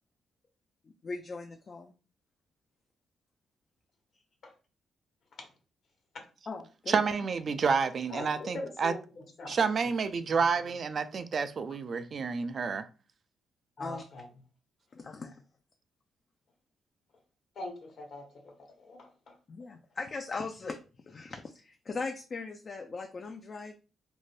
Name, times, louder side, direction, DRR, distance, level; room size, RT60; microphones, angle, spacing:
voice 1, 0.8-1.9 6.5-7.3 13.8-14.0 14.9-15.4 19.5-20.8 21.1-23.7, left 4 dB, 45° left, 0.3 m, -39 dB
voice 2, 6.9-8.9 9.5-12.9, right 5 dB, 55° right, 0.3 m, -29 dB
voice 3, 8.1-9.6 9.8-9.9 10.3-10.7 13.8-14.3 17.5-19.4, left 2 dB, 65° left, 1.1 m, -43 dB
2.5 x 2.1 x 3.2 m
supercardioid pair, 55°, 0 cm